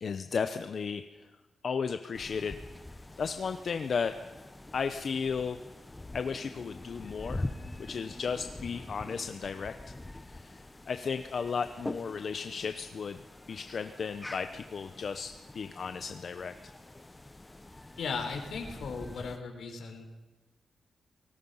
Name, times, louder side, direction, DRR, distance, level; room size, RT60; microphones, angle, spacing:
voice 1, 0.0-1.3 1.6-2.6 3.2-4.1 4.7-5.6 6.1-7.5 7.8-9.7 10.3-13.2 13.5-16.5, left 5 dB, 45° left, 9 dB, 0.7 m, -34 dB
sound 1, 2.1-19.4, left 2 dB, 15° left, 0.8 m, -44 dB
voice 2, 18.0-20.1, left 5 dB, 75° left, 5 dB, 3.9 m, -37 dB
29.5 x 19.0 x 5.6 m, 1.1 s
wide cardioid pair, 175°, 0 cm